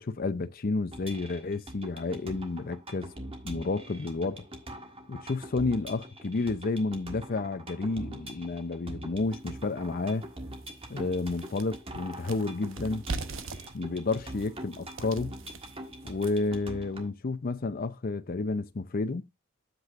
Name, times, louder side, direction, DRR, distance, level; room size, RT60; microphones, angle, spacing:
voice 1, 0.0-3.1 3.4-4.5 5.1-10.2 10.9-13.0 13.7-15.3 16.0-19.3, left 3 dB, 45° left, 0.6 m, -31 dB
sound 1, 0.9-17.1, right 1 dB, 30° right, 1.6 m, -43 dB
sound 2, 9.5-9.6 10.1-10.2 10.5-16.6, right 3 dB, 75° right, 0.9 m, -41 dB
9.3 x 7.9 x 2.5 m
head